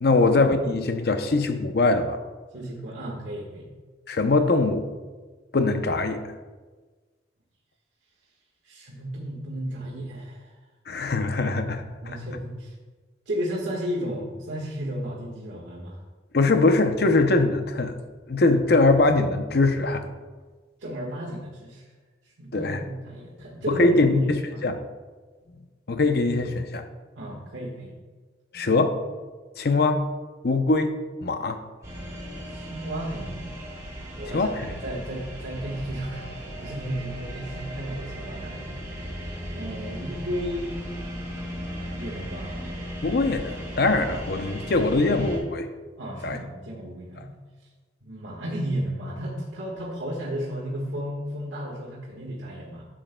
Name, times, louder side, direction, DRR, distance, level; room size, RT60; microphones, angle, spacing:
voice 1, 0.0-2.2 4.1-4.9 5.5-6.2 10.9-11.8 16.3-17.9 18.3-20.0 22.5-22.8 23.7-24.8 25.9-26.8 28.5-29.0 29.6-30.1 30.4-30.9 31.2-31.6 34.3-34.5 43.0-45.7 46.2-46.4, left 3 dB, 55° left, 7 dB, 0.6 m, -22 dB
voice 2, 2.5-3.7 8.6-10.6 12.0-12.7 13.2-16.0 20.8-21.8 22.2-24.6 27.1-27.9 32.4-33.5 34.1-38.7 39.1-40.8 41.9-42.6 46.0-47.4 48.0-52.9, equal, 90° right, -5 dB, 1.5 m, -33 dB
sound 1, 31.8-45.4, equal, 15° right, 1.8 m, -36 dB
11.5 x 7.6 x 2.2 m, 1.3 s
head